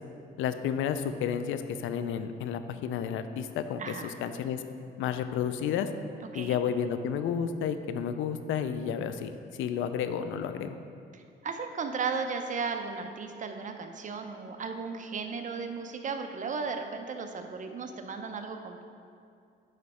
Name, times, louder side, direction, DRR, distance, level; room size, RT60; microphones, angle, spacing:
voice 1, 0.4-4.6 5.0-5.9 6.3-10.8, left 8 dB, 80° left, 10 dB, 0.4 m, -31 dB
voice 2, 3.8-4.1 6.2-6.6 11.1-18.8, right 5 dB, 40° right, 6 dB, 0.6 m, -35 dB
9.2 x 3.2 x 4.2 m, 2.4 s
cardioid pair, 90°, 20 cm